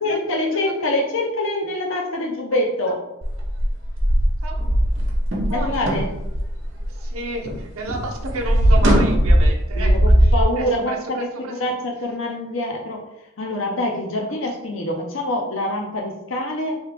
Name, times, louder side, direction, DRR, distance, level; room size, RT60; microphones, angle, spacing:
voice 1, 0.0-3.0 5.5-6.1 9.8-13.0 13.4-16.8, left 1 dB, 65° left, 1 dB, 0.7 m, -25 dB
sound 1, 3.2-7.6 7.9-10.4, equal, 60° right, 0.9 m, -18 dB
voice 2, 6.9-11.5 14.3-14.4, right 2 dB, 90° right, 1 dB, 0.7 m, -31 dB
3.1 x 2.9 x 3.3 m, 0.88 s
head